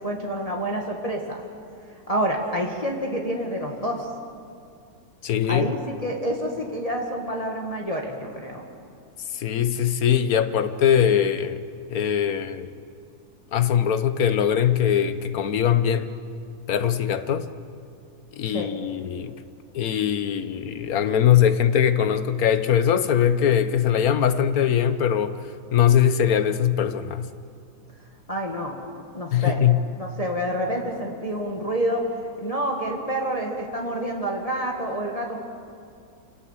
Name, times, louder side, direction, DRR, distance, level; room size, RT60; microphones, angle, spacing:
voice 1, 0.0-1.4 2.1-4.1 5.5-8.6 18.5-18.7 28.3-28.8 29.1-29.6 29.9-32.1 32.4-35.5, right 1 dB, 25° left, 2.0 m, -28 dB
voice 2, 5.2-5.7 9.3-11.6 11.9-12.7 13.5-16.1 16.7-17.5 18.3-19.3 19.7-25.4 25.7-27.3 29.3-29.8, left 9 dB, 70° left, 1.4 m, -21 dB
26.0 x 18.5 x 7.4 m
omnidirectional pair, 1.6 m